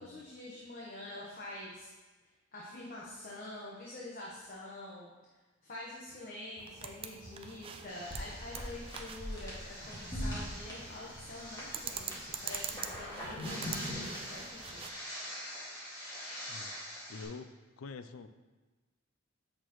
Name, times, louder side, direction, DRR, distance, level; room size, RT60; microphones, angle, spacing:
voice 1, 0.0-1.9 2.5-5.1 5.6-14.0 14.3-14.9, left 1 dB, 40° left, -5 dB, 1.1 m, -46 dB
sound 1, 6.6-14.9, right 6 dB, 25° right, 0.4 m, -45 dB
sound 2, 7.9-17.2, equal, 15° left, 2.0 m, -42 dB
voice 2, 17.1-17.5 17.8-18.3, left 4 dB, 85° left, 11 dB, 0.5 m, -45 dB
8.3 x 6.5 x 3.1 m, 1.3 s
head